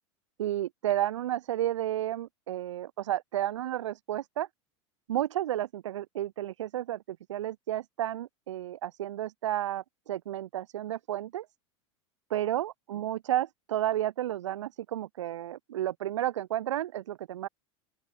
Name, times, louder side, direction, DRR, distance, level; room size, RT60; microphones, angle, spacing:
voice 1, 0.4-4.5 5.1-11.5 12.3-17.5, right 12 dB, 75° right, 1.4 m, -32 dB
open air
hypercardioid pair, 90°, 15 cm